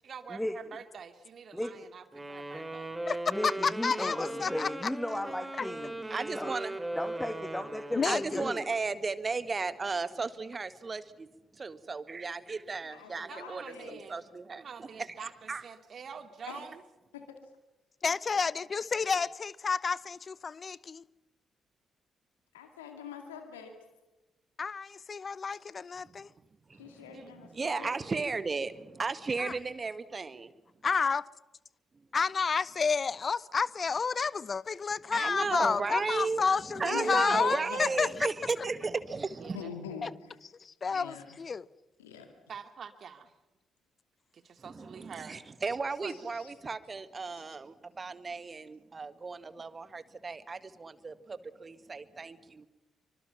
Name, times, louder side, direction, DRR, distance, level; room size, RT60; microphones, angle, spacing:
voice 1, 0.0-2.9 4.4-4.5 13.3-14.2 14.5-16.8 27.1-27.3 27.8-28.3 39.4-40.1 42.5-43.3 44.3-45.4 46.0-46.1, right 6 dB, 50° right, 2.5 m, -47 dB
voice 2, 1.5-1.8 3.3-5.9 6.3-6.5 7.0-8.7, left 1 dB, 10° left, 2.1 m, -35 dB
Wind instrument woodwind instrument, 2.1-8.6, right 1 dB, 15° right, 3.4 m, -39 dB
voice 3, 3.1-4.9 5.6-5.7 7.9-8.5 18.0-21.0 24.6-26.3 29.4-29.5 30.8-31.3 32.1-38.1 40.0-40.1 40.6-41.7, left 5 dB, 40° left, 0.8 m, -30 dB
voice 4, 6.1-6.8 8.0-11.3 11.6-14.9 15.5-15.6 26.1-26.2 26.7-30.5 35.1-36.4 36.8-39.6 44.6-52.7, right 4 dB, 35° right, 1.7 m, -35 dB
voice 5, 12.9-14.1 16.5-16.6 22.5-23.7 26.8-27.9 35.4-35.7 36.9-37.9 39.5-40.4 40.9-41.4 42.0-42.3 46.1-46.5, left 6 dB, 80° left, 2.2 m, -44 dB
27.5 x 24.5 x 5.8 m
figure-of-eight pair, 40°, 0 cm